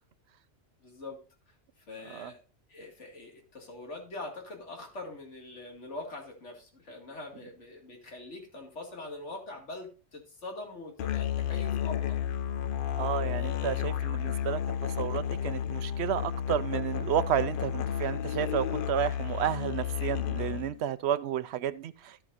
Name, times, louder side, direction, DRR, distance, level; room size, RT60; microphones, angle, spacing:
voice 1, 0.8-1.2 1.5-2.4 2.7-12.2 13.5-13.7, left 2 dB, 85° left, 2.6 m, -43 dB
Musical instrument, 11.0-20.8, left 9 dB, 60° left, 0.7 m, -32 dB
voice 2, 13.0-22.3, right 10 dB, 70° right, 0.9 m, -32 dB
13.0 x 7.8 x 2.6 m
omnidirectional pair, 1.2 m